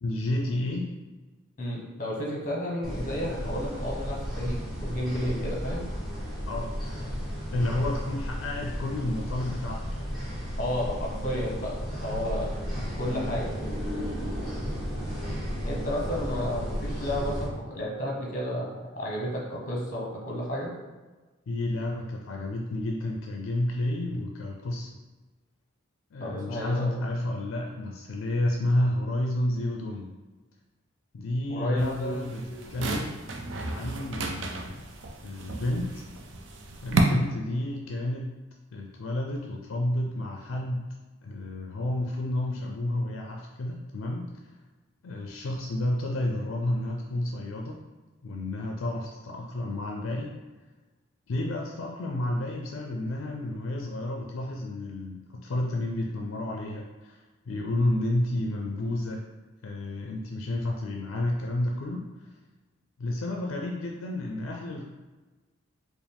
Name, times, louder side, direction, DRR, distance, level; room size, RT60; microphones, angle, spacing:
voice 1, 0.0-1.0 6.5-6.7 7.5-10.2 21.5-24.9 26.1-30.1 31.1-33.2 33.7-34.7 35.2-35.9 36.8-38.3 38.7-40.8 41.2-44.3 45.0-47.8 48.2-50.3 51.3-59.2 59.6-62.0 63.0-64.9, left 1 dB, 75° left, 0 dB, 0.4 m, -30 dB
voice 2, 1.6-5.9 10.6-11.7 12.0-12.5 13.0-13.5 15.6-20.7 26.2-26.9 31.5-32.2 32.5-33.0, equal, 40° left, -3 dB, 1.0 m, -32 dB
sound 1, 2.8-17.4, equal, 5° right, 1.0 m, -33 dB
sound 2, 31.8-37.0, right 4 dB, 60° right, 0.5 m, -33 dB
4.8 x 2.0 x 3.4 m, 1.2 s
head